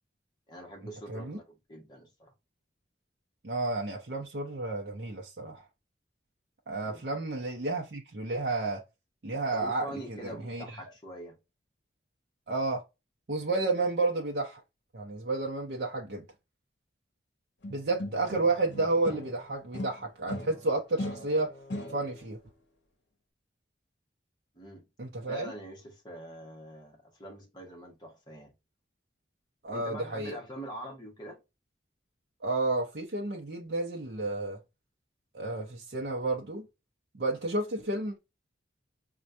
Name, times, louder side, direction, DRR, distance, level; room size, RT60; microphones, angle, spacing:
voice 1, 0.5-2.3 6.8-7.0 9.5-11.4 24.5-24.9 25.3-28.5 29.7-31.4, right 1 dB, 20° left, 1.2 m, -44 dB
voice 2, 3.4-5.6 6.7-8.8 9.2-10.8 12.5-12.8 13.3-14.6 14.9-16.3 17.7-21.5 21.9-22.4 25.0-25.5 29.6-30.4 32.4-34.6 35.3-36.7 37.1-38.2, right 2 dB, 60° right, 0.6 m, -31 dB
sound 1, 17.6-19.4 19.7-22.3, left 1 dB, 70° left, 0.8 m, -39 dB
4.3 x 2.3 x 2.5 m
head